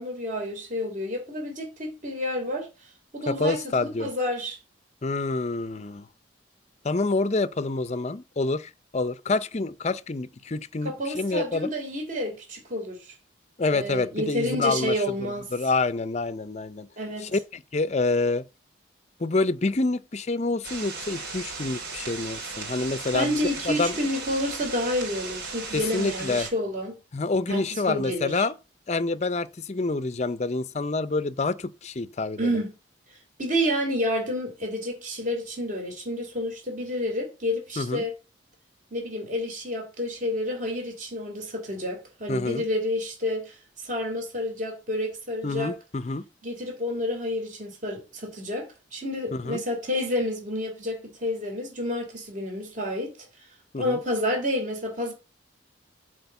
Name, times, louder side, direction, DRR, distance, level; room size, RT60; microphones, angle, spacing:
voice 1, 0.0-4.6 10.8-13.1 13.7-15.5 17.0-17.3 23.1-27.0 27.5-28.4 32.4-32.7 33.4-38.1 38.9-45.8 46.4-53.1 53.8-55.1, left 1 dB, 40° right, 3.2 m, -29 dB
voice 2, 3.3-4.1 5.0-6.1 6.8-11.7 13.6-16.9 17.2-18.4 19.2-23.3 23.7-24.0 25.7-26.5 27.1-28.5 28.9-32.6 37.8-38.0 42.3-42.6 45.4-46.2 49.3-49.6 53.7-54.0, left 3 dB, 35° left, 0.5 m, -27 dB
sound 1, 20.6-26.5, right 4 dB, 60° right, 4.7 m, -36 dB
7.9 x 5.0 x 7.0 m
head